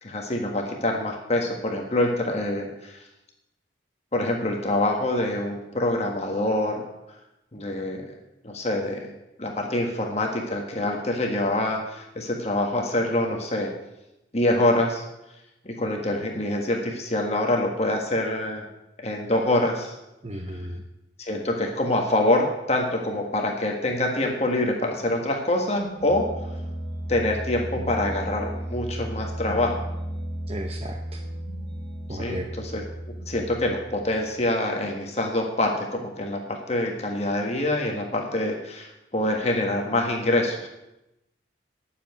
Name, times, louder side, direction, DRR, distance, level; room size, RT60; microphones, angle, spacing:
voice 1, 0.0-3.0 4.1-6.8 7.5-8.1 8.4-9.1 9.4-13.7 14.3-15.0 15.6-18.6 19.0-19.9 21.2-26.3 27.1-29.8 32.1-40.7, left 1 dB, 35° left, 1 dB, 1.5 m, -25 dB
voice 2, 20.2-20.8 30.5-31.2 32.1-32.5, equal, 30° right, 4 dB, 0.8 m, -35 dB
sound 1, 25.5-34.3, right 1 dB, 80° right, 4.0 m, -34 dB
10.0 x 7.2 x 9.3 m, 0.92 s
head